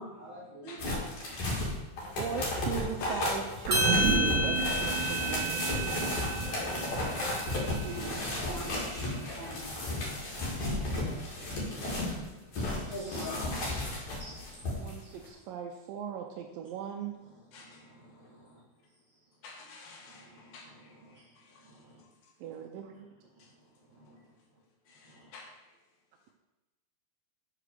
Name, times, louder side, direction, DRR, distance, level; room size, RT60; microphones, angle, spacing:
voice 1, 0.0-1.3 4.6-4.8 5.1-5.3 5.6-7.3 7.7-11.1 11.4-12.4 12.8-13.6 13.9-14.7 17.6-18.6 20.1-21.3 21.6-22.0 23.4-23.5 23.9-24.2 25.1-25.3, right 1 dB, 20° right, -7 dB, 2.2 m, -46 dB
sound 1, 0.8-12.2 12.5-14.9 15.2-15.3, left 2 dB, 55° left, 3.1 m, -34 dB
voice 2, 2.2-6.2 11.9-12.3 14.8-17.2 22.4-23.1, right 7 dB, 85° right, 3 dB, 2.1 m, -38 dB
sound 2, 3.6-8.3 8.6-8.7, right 4 dB, 65° right, 2.2 m, -34 dB
sound 3, 3.7-8.1, right 1 dB, 5° left, 1.4 m, -32 dB
voice 3, 8.8-9.1 12.6-12.9 13.2-14.1 17.5-18.0 19.4-22.3 23.4-23.5 24.9-25.7, left 4 dB, 75° left, 1 dB, 3.1 m, -49 dB
6.3 x 5.8 x 6.6 m, 1.0 s
omnidirectional pair, 4.4 m